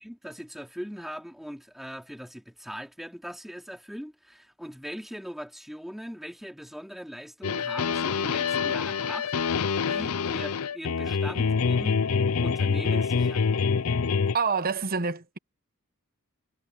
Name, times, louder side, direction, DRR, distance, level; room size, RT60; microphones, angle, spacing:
voice 1, 0.0-12.0 12.4-13.5, equal, ahead, 4.0 m, -40 dB
sound 1, 7.4-14.3, left 5 dB, 70° left, 0.6 m, -26 dB
voice 2, 14.3-15.4, right 5 dB, 45° right, 1.1 m, -27 dB
head